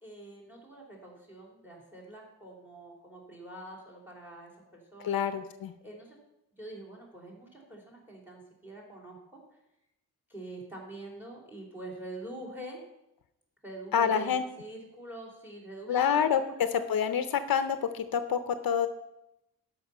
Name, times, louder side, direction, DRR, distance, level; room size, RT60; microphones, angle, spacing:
voice 1, 0.0-5.2 5.8-6.2 6.6-9.6 10.3-12.8 13.6-16.6, right 1 dB, 5° right, -1 dB, 3.0 m, -45 dB
voice 2, 5.0-5.7 13.9-14.4 15.9-18.9, left 7 dB, 70° left, 10 dB, 0.7 m, -27 dB
13.0 x 5.5 x 5.5 m, 0.88 s
wide cardioid pair, 145°, 37 cm